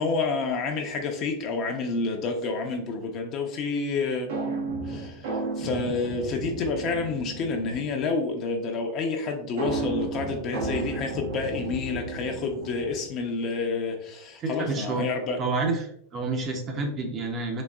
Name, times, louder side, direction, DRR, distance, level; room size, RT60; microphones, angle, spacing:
voice 1, 0.0-15.4, left 4 dB, 40° left, 3 dB, 0.7 m, -29 dB
sound 1, 4.3-8.0 9.6-13.2, right 3 dB, 90° right, 1.2 m, -33 dB
voice 2, 14.4-15.1 15.4-17.6, right 3 dB, 30° right, 3 dB, 0.7 m, -29 dB
4.0 x 2.8 x 2.3 m, 0.66 s
supercardioid pair, 135°, 0 cm